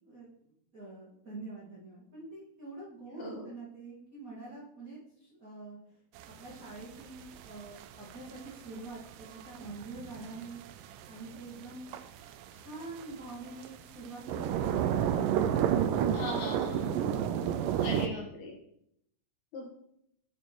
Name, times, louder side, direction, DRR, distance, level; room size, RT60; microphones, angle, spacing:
voice 1, 0.0-6.0 6.4-10.6 11.1-12.1 12.5-15.1, right 2 dB, 30° right, -8 dB, 1.8 m, -46 dB
sound 1, 6.2-18.1, right 9 dB, 85° right, 2.1 m, -32 dB
voice 2, 16.1-16.9 17.8-18.6 19.5-19.7, left 1 dB, 65° left, -2 dB, 2.7 m, -38 dB
8.3 x 4.5 x 4.5 m, 0.74 s
omnidirectional pair, 3.9 m